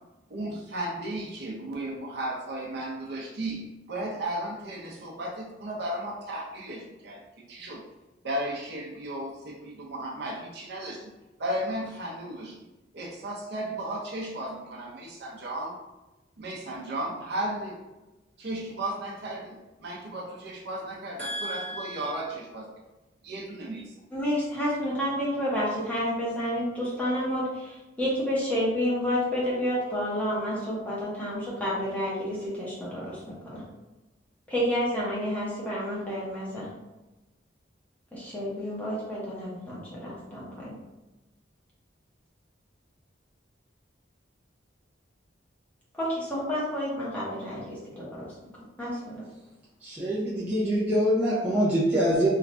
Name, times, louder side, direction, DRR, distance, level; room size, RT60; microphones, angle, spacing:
voice 1, 0.3-7.2 7.5-7.8 8.2-11.1 11.4-12.6 12.9-15.8 16.4-17.8 18.4-22.7 23.2-23.9, right 1 dB, 65° right, -3 dB, 0.6 m, -35 dB
voice 2, 21.2-22.2 24.1-33.6 34.5-36.7 38.1-40.7 45.9-48.3 48.8-49.2, equal, 10° left, -7 dB, 0.8 m, -30 dB
voice 3, 49.8-52.3, equal, 10° right, -9 dB, 0.5 m, -24 dB
3.1 x 2.2 x 2.5 m, 1.1 s
head